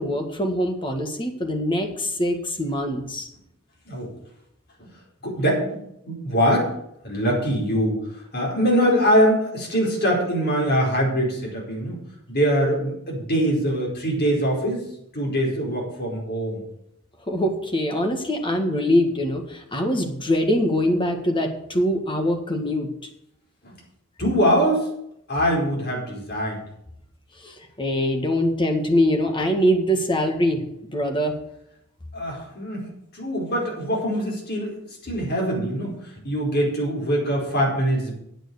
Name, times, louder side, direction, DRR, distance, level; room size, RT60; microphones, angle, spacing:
voice 1, 0.0-3.3 17.3-22.9 27.4-30.6 30.9-31.3, equal, 25° left, 4 dB, 1.8 m, -23 dB
voice 2, 5.2-5.8 6.1-6.7 7.0-8.0 8.3-12.0 12.3-14.8 15.1-16.6 24.2-24.9 25.3-26.6 32.1-32.9 33.1-38.1, equal, 50° left, -2 dB, 4.6 m, -23 dB
9.3 x 8.0 x 8.1 m, 0.77 s
head